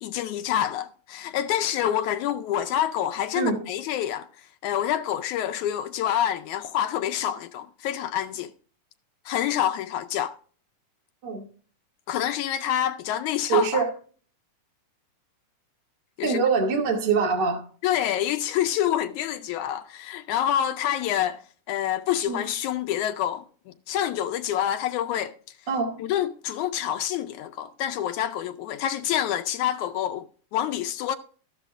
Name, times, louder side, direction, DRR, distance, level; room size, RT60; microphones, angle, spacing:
voice 1, 0.0-8.5 9.2-10.4 12.1-13.9 16.2-16.4 17.8-21.4 21.7-23.4 23.9-25.3 26.0-31.2, left 11 dB, 80° left, 1.8 m, -27 dB
voice 2, 13.5-13.9 16.2-17.6 22.3-22.4 25.7-26.0, right 5 dB, 35° right, 2.6 m, -24 dB
14.0 x 12.5 x 2.5 m
omnidirectional pair, 3.8 m